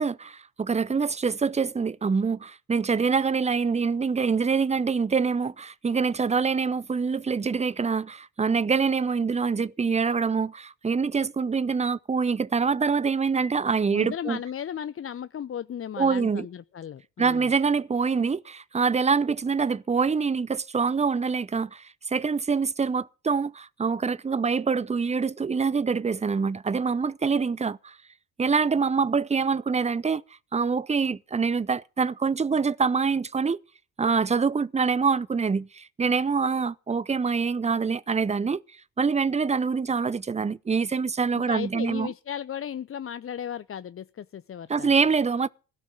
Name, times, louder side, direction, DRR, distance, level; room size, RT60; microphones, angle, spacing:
voice 1, 0.0-14.4 16.0-16.5 17.2-28.0 28.4-30.2 30.5-33.6 34.0-38.6 39.0-42.1 44.7-45.5, right 5 dB, 15° right, 0.6 m, -25 dB
voice 2, 13.9-17.5 41.3-44.9, left 9 dB, 30° left, 0.6 m, -35 dB
16.5 x 6.0 x 9.0 m
figure-of-eight pair, 45°, 49 cm